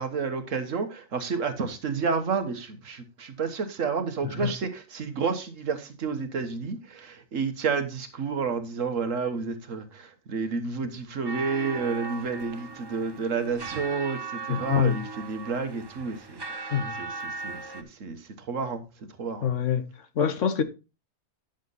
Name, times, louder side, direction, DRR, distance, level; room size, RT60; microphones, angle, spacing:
voice 1, 0.0-19.5, right 5 dB, 65° right, 1.6 m, -30 dB
sound 1, 11.2-17.8, right 4 dB, 25° right, 0.6 m, -38 dB
voice 2, 14.5-15.0 16.7-17.0 19.4-19.8 20.1-20.6, left 7 dB, 65° left, 1.3 m, -25 dB
10.0 x 6.6 x 4.0 m
omnidirectional pair, 1.4 m